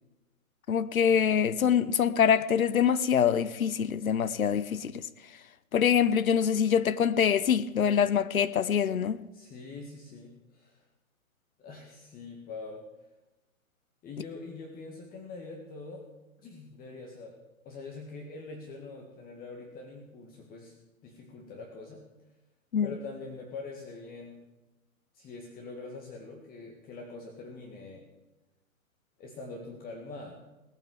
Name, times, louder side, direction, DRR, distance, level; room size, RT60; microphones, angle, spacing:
voice 1, 0.7-5.1 5.7-9.2 22.7-22.9, left 8 dB, 75° left, 1.0 m, -25 dB
voice 2, 9.3-10.9 11.6-12.9 14.0-16.1 16.4-17.4 17.7-20.8 21.0-22.1 22.8-24.4 25.1-28.1 29.2-30.3, left 3 dB, 20° left, 2.0 m, -44 dB
18.0 x 9.2 x 8.0 m
figure-of-eight pair, 125°, 42 cm